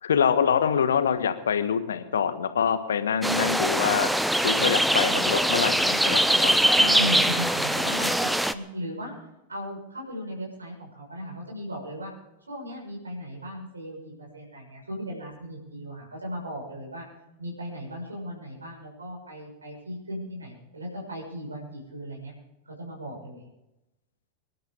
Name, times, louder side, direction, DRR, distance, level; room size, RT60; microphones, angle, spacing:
voice 1, 0.0-4.1 4.4-6.6, left 7 dB, 65° left, 10 dB, 1.4 m, -25 dB
sound 1, 3.2-8.5, right 1 dB, ahead, 0.7 m, -22 dB
voice 2, 6.7-8.1 8.5-9.2 9.5-12.1 12.5-17.1 17.4-22.3 22.7-23.4, equal, 75° right, -1 dB, 6.1 m, -36 dB
25.5 x 11.5 x 3.8 m, 0.91 s
figure-of-eight pair, 90°, 0 cm